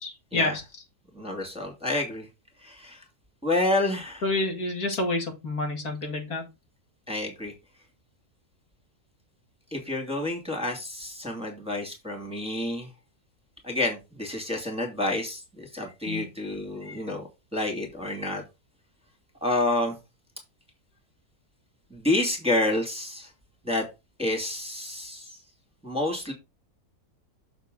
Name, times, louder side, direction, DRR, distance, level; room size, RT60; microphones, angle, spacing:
voice 1, 0.0-0.6 4.2-6.4 16.1-16.3, left 2 dB, 75° left, 2 dB, 2.6 m, -28 dB
voice 2, 1.1-2.3 2.6-3.0 3.4-4.2 7.1-7.5 9.7-12.9 13.6-18.4 19.4-20.0 21.9-23.3 23.6-23.9 24.2-25.3 25.8-26.3, left 2 dB, 5° right, 0 dB, 2.2 m, -29 dB
6.9 x 6.5 x 3.8 m, 0.24 s
omnidirectional pair, 1.6 m